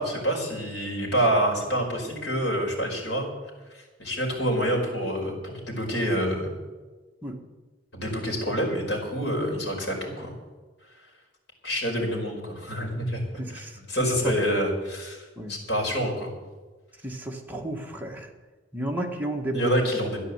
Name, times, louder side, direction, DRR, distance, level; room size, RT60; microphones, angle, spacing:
voice 1, 0.0-3.3 3.7-6.5 7.9-10.3 11.6-13.2 13.5-15.2 15.5-16.3 19.5-20.2, equal, 65° left, -1 dB, 4.9 m, -27 dB
voice 2, 17.0-18.3 18.7-19.7, right 1 dB, 10° right, 0 dB, 1.7 m, -32 dB
13.0 x 10.0 x 8.2 m, 1.3 s
head